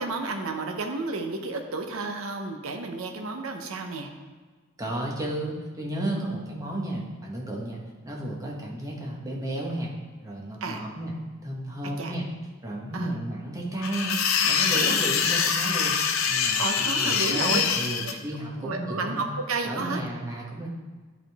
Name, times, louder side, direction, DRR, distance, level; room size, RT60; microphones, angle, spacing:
voice 1, 0.0-4.1 6.2-6.4 10.6-10.8 12.0-12.1 12.9-13.1 14.8-15.0 16.6-17.6 18.0-18.2 18.6-20.0, right 3 dB, 80° right, 4 dB, 0.7 m, -32 dB
voice 2, 4.8-9.9 10.2-11.1 11.4-12.3 12.6-19.3 19.6-20.7, right 1 dB, 15° right, -3 dB, 1.1 m, -33 dB
sound 1, 13.8-18.1, left 6 dB, 70° left, 0.6 m, -24 dB
10.5 x 3.7 x 3.5 m, 1.4 s
head